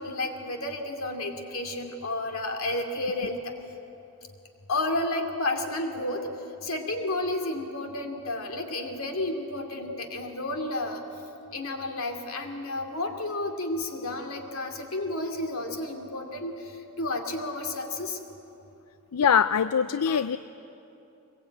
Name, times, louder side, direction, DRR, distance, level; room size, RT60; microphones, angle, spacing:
voice 1, 0.0-3.5 4.7-6.3 6.6-11.0 11.5-18.2, left 2 dB, 65° left, 4 dB, 2.6 m, -31 dB
voice 2, 19.1-20.4, left 7 dB, 85° left, 13 dB, 0.5 m, -22 dB
23.5 x 21.5 x 9.1 m, 2.9 s
head